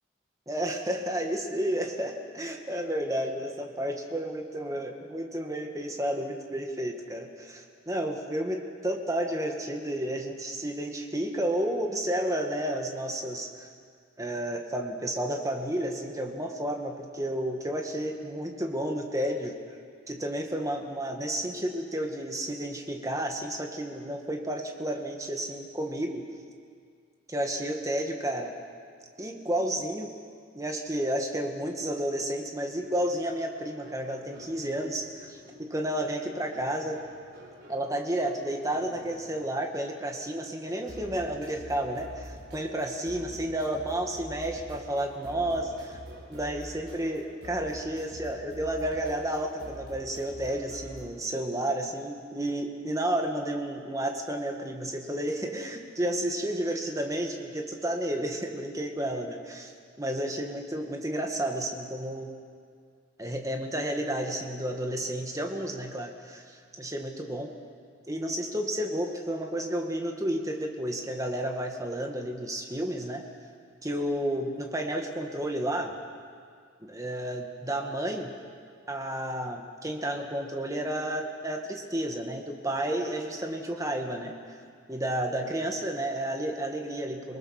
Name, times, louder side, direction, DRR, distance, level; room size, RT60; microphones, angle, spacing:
voice 1, 0.5-13.7 14.2-19.6 20.1-26.2 27.3-28.5 29.2-30.1 30.5-37.0 37.7-46.0 46.3-59.7 60.0-62.3 63.2-67.5 68.1-73.2 73.8-75.9 76.8-78.3 78.9-84.6 84.9-87.4, right 1 dB, 15° right, 3 dB, 2.0 m, -31 dB
sound 1, 32.7-51.0, equal, 55° right, 6.4 m, -48 dB
28.5 x 20.0 x 6.7 m, 2.2 s
head